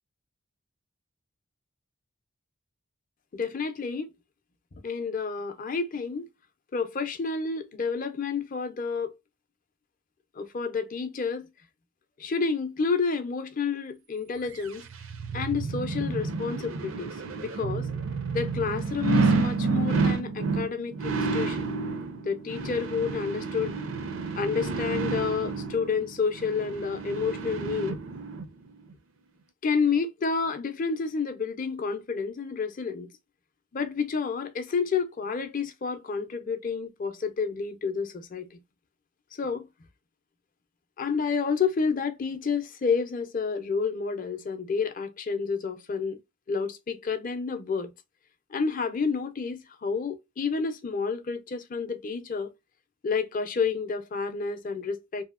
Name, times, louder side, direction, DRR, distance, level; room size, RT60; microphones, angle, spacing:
voice 1, 3.3-4.1 4.7-6.3 6.7-9.1 10.4-11.5 12.2-14.9 15.3-17.2 17.4-17.9 18.3-21.7 22.2-23.8 24.3-28.0 29.6-33.1 33.7-38.6 39.3-39.7 41.0-46.2 46.5-47.9 48.5-52.5 53.0-55.2, left 5 dB, 40° left, 0.5 m, -29 dB
sound 1, 14.6-28.5 28.9-29.0, right 4 dB, 65° right, 0.5 m, -30 dB
2.8 x 2.7 x 2.3 m
head